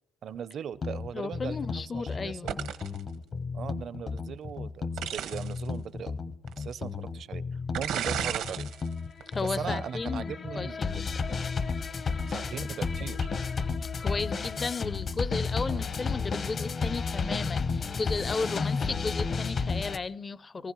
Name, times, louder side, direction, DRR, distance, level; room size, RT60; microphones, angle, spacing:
voice 1, 0.2-2.5 3.5-6.1 6.6-7.4 7.8-8.7 9.4-10.8 12.2-13.3 15.7-15.9, right 8 dB, 65° right, 0.6 m, -39 dB
sound 1, 0.8-20.0, left 4 dB, 50° left, 0.9 m, -32 dB
voice 2, 1.1-2.6 9.3-11.1 13.8-20.7, left 4 dB, 35° left, 0.5 m, -34 dB
sound 2, 2.5-3.0 5.0-5.6 6.5-6.6 7.7-8.8 9.2-9.5, right 9 dB, 90° right, 1.1 m, -33 dB
23.0 x 15.0 x 3.1 m
cardioid pair, 90°, 0 cm